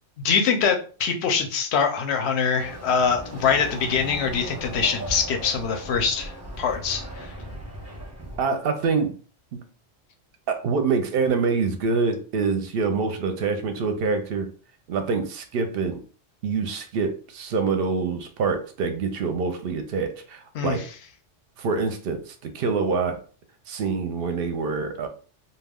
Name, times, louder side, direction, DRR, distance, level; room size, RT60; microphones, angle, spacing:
voice 1, 0.2-6.3 6.6-7.3 20.5-20.8, left 6 dB, 70° left, 4 dB, 0.8 m, -24 dB
Chatter / Car passing by / Motorcycle, 2.6-8.5, right 1 dB, 15° right, 0.7 m, -37 dB
voice 2, 8.4-9.1 9.5-9.6 10.5-14.5 14.9-16.0 16.4-20.8 21.6-23.2 23.7-25.1, right 4 dB, 65° right, 7 dB, 0.7 m, -25 dB
2.3 x 2.2 x 3.4 m, 0.38 s
omnidirectional pair, 1.2 m